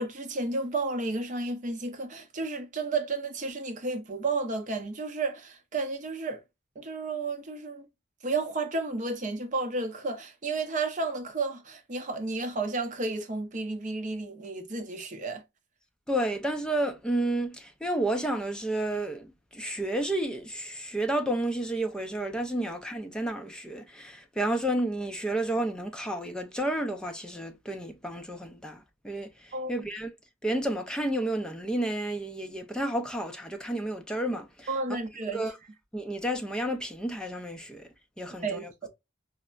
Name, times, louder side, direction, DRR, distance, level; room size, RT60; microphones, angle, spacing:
voice 1, 0.0-6.4 6.8-7.9 8.2-15.4 29.5-29.7 34.7-35.4 38.4-38.9, right 3 dB, 40° right, 0.7 m, -32 dB
voice 2, 16.1-30.1 30.4-35.0 35.3-35.6 35.9-37.9 38.2-38.7, right 1 dB, 5° left, 0.4 m, -31 dB
4.2 x 2.1 x 2.2 m
head